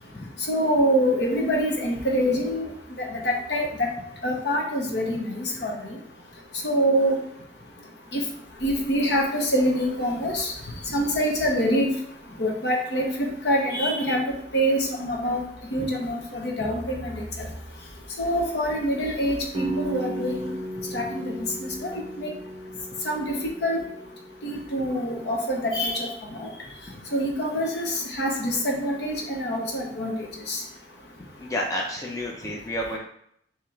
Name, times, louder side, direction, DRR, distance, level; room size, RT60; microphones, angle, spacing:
voice 1, 0.5-2.7 3.0-3.9 4.2-5.2 5.6-5.7 6.6-7.2 8.1-8.2 8.6-10.5 10.9-11.9 12.4-14.2 14.5-15.4 15.7-17.2 18.2-20.5 20.9-21.9 22.2-22.3 23.0-23.3 23.6-23.8 24.4-26.1 26.4-26.5 27.1-30.6, equal, 65° left, 0 dB, 0.9 m, -25 dB
sound 1, 19.5-25.3, right 1 dB, 30° right, 0.6 m, -35 dB
voice 2, 31.4-33.0, left 1 dB, 20° left, -2 dB, 0.6 m, -30 dB
3.7 x 2.9 x 4.4 m, 0.71 s
head